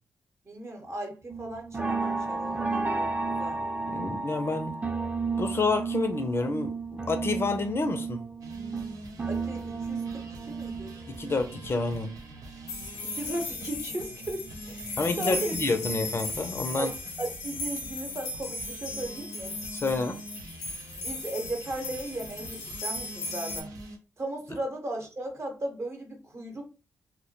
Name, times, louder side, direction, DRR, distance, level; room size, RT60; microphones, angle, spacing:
voice 1, 0.4-3.6 9.2-10.9 13.0-15.6 16.8-19.6 20.9-23.7 24.2-26.6, right 1 dB, 45° right, 0.9 m, -37 dB
sound 1, 1.3-13.4 13.8-15.4 15.8-16.1 16.4-16.5, right 4 dB, 25° right, 0.6 m, -33 dB
voice 2, 3.9-4.8 5.4-8.2 11.1-12.1 15.0-16.9 19.7-20.2, left 3 dB, 40° left, 0.5 m, -29 dB
sound 2, 8.4-24.0, right 2 dB, 70° right, 0.5 m, -45 dB
sound 3, 12.7-23.6, left 3 dB, 90° left, 0.5 m, -37 dB
2.2 x 2.1 x 2.8 m
hypercardioid pair, 40°, 6 cm